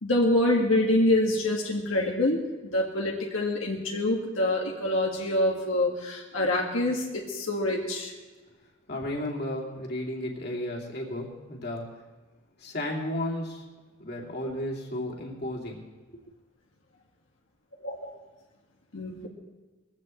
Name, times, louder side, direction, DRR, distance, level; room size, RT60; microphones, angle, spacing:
voice 1, 0.0-8.1 17.8-18.2 18.9-19.3, left 1 dB, 85° left, -2 dB, 1.9 m, -26 dB
voice 2, 8.9-11.8 12.6-13.6 14.0-15.9, left 1 dB, 50° left, -2 dB, 2.7 m, -33 dB
21.0 x 16.0 x 3.2 m, 1.2 s
head